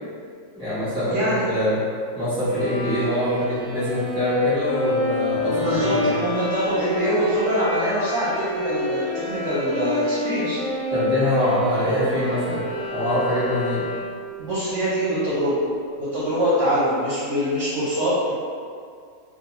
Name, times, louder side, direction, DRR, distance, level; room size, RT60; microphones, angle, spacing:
voice 1, 0.6-1.8 2.1-6.1 10.9-13.8, equal, 5° right, -12 dB, 0.8 m, -24 dB
voice 2, 1.1-1.4 5.5-10.6 14.4-15.6 16.0-18.3, equal, 65° right, -9 dB, 0.8 m, -23 dB
Bowed string instrument, 2.5-14.3, left 2 dB, 50° left, 0.7 m, -28 dB
2.4 x 2.2 x 2.9 m, 2.2 s
omnidirectional pair, 1.5 m